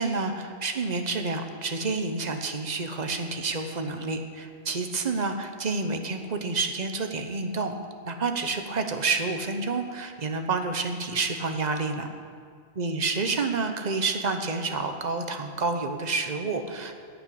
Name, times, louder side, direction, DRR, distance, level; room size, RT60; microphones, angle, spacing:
voice 1, 0.0-7.7 8.1-12.1 12.8-17.0, right 3 dB, 40° right, 6 dB, 1.1 m, -29 dB
10.5 x 8.9 x 8.6 m, 2.1 s
omnidirectional pair, 1.1 m